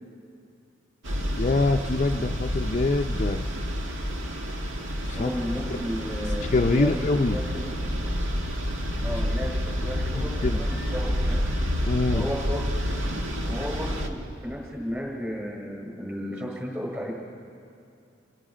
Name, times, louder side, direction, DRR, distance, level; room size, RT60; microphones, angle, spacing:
sound 1, 1.0-14.1, equal, 75° right, 1.8 m, -29 dB
voice 1, 1.4-3.5 5.0-5.3 6.5-7.4 10.2-10.6 11.9-12.3, left 3 dB, 35° left, 4 dB, 0.5 m, -25 dB
voice 2, 5.2-7.0 7.3-7.8 9.0-11.5 12.1-13.0 13.5-17.1, equal, 10° right, -2 dB, 6.5 m, -34 dB
29.5 x 20.5 x 5.0 m, 2.6 s
head